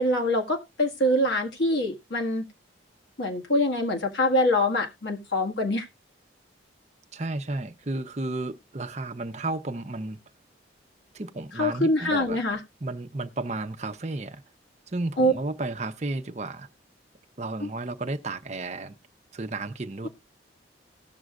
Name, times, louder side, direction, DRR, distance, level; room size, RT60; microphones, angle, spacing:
voice 1, 0.0-2.4 3.2-5.9 11.5-12.6 15.2-15.3 17.6-17.7, left 1 dB, 75° left, 1.6 m, -24 dB
voice 2, 7.1-10.2 11.1-12.4 12.8-14.4 14.9-16.7 17.4-19.0 19.3-20.1, right 2 dB, 35° right, 0.6 m, -33 dB
18.0 x 6.2 x 2.4 m
head